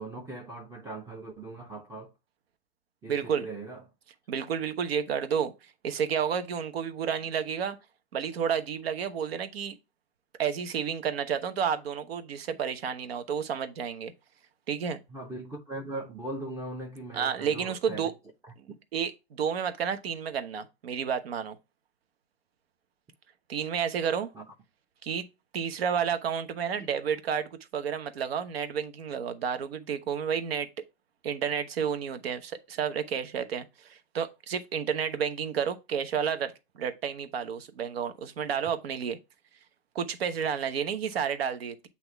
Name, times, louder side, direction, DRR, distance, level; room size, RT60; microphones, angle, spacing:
voice 1, 0.0-2.1 3.0-3.9 15.1-18.1 18.7-18.8 24.3-24.5 26.8-27.0, right 2 dB, 10° right, 0.8 m, -40 dB
voice 2, 3.1-3.5 4.3-7.8 8.1-9.8 10.4-14.1 14.7-15.0 17.1-18.1 18.9-21.6 23.5-24.3 25.0-25.3 25.5-30.7 31.2-39.2 39.9-41.9, right 7 dB, 70° right, 1.0 m, -31 dB
7.9 x 2.9 x 4.5 m
hypercardioid pair, 120°, 31 cm